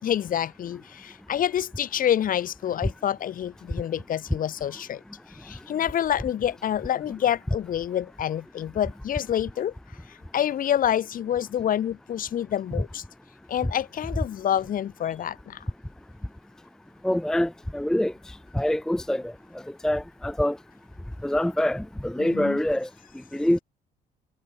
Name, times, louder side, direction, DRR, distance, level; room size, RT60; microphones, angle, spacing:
voice 1, 0.0-5.0 5.3-9.7 10.1-13.0 13.5-15.6 22.2-22.6, left 10 dB, 55° left, 4.8 m, -27 dB
voice 2, 17.0-19.3 19.8-20.6 21.2-22.9 23.3-23.6, left 1 dB, 5° left, 0.7 m, -25 dB
cardioid pair, 110°, 17 cm